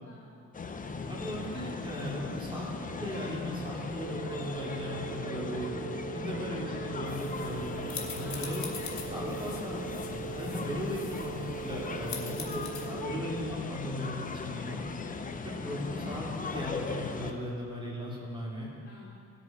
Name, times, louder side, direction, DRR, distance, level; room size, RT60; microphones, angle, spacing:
voice 1, 0.0-0.4 6.0-6.3 8.1-8.7 12.1-12.5 15.0-15.3 18.8-19.1, left 2 dB, 50° left, -9 dB, 3.2 m, -53 dB
sound 1, 0.5-17.3, left 4 dB, 25° left, 0.8 m, -38 dB
voice 2, 1.1-5.7 6.1-8.6 8.9-9.8 10.3-14.8 15.4-18.7, equal, 15° right, -5 dB, 3.0 m, -37 dB
sound 2, 4.0-13.5, right 16 dB, 80° right, 0.6 m, -42 dB
sound 3, 7.0-12.9, left 6 dB, 65° left, 1.8 m, -44 dB
17.0 x 6.9 x 4.5 m, 2.3 s
cardioid pair, 90°, 30 cm